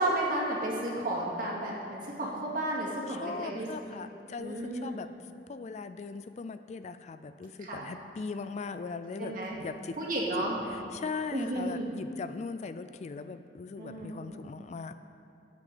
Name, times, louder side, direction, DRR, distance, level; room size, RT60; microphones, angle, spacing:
voice 1, 0.0-3.7 4.4-5.0 7.6-7.9 9.2-9.6 10.0-10.6 11.3-11.8 13.8-14.5, right 1 dB, 50° right, -4 dB, 2.2 m, -32 dB
voice 2, 3.1-5.1 5.5-10.0 10.4-14.9, left 4 dB, 40° left, 11 dB, 0.3 m, -39 dB
16.5 x 8.2 x 4.2 m, 2.7 s
head